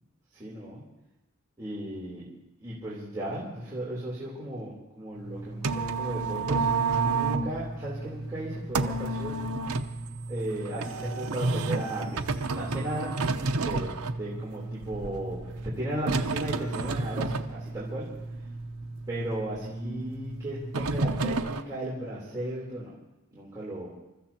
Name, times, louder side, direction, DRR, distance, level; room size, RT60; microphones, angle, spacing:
voice 1, 0.3-0.8 1.6-2.3 2.6-9.5 10.3-12.3 12.5-13.1 13.6-18.1 19.1-22.9 23.3-23.9, right 1 dB, 15° right, -9 dB, 3.6 m, -36 dB
sound 1, 5.2-21.6, right 3 dB, 90° right, 0.8 m, -31 dB
28.0 x 14.0 x 2.9 m, 0.96 s
head